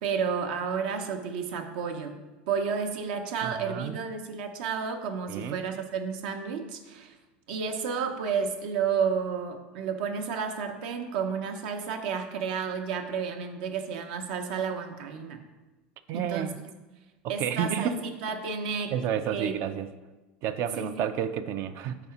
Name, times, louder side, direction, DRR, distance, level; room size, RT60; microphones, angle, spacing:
voice 1, 0.0-2.2 2.5-7.1 7.5-15.4 16.1-16.5 17.3-19.0 19.3-19.5 20.8-20.9, right 6 dB, 75° right, 5 dB, 0.8 m, -31 dB
voice 2, 3.4-4.0 5.3-5.6 16.1-16.6 17.2-18.0 18.9-19.9 20.4-22.0, right 9 dB, 55° right, 10 dB, 0.4 m, -31 dB
4.9 x 4.1 x 5.7 m, 1.1 s
supercardioid pair, 115°, 5 cm